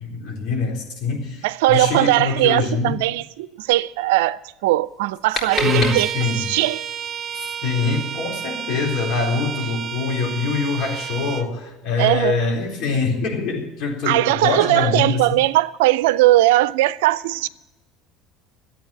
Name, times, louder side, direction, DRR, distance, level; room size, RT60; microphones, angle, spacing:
voice 1, 0.0-3.0 5.6-6.5 7.4-15.4, left 4 dB, 65° left, 4.0 m, -24 dB
voice 2, 1.4-6.8 12.0-12.4 14.1-17.5, right 16 dB, 80° right, 0.4 m, -19 dB
sound 1, 4.8-6.5, left 3 dB, 35° left, 3.8 m, -31 dB
Bowed string instrument, 5.5-11.5, right 8 dB, 30° right, 1.2 m, -29 dB
12.5 x 8.6 x 8.5 m
supercardioid pair, 85°, 0 cm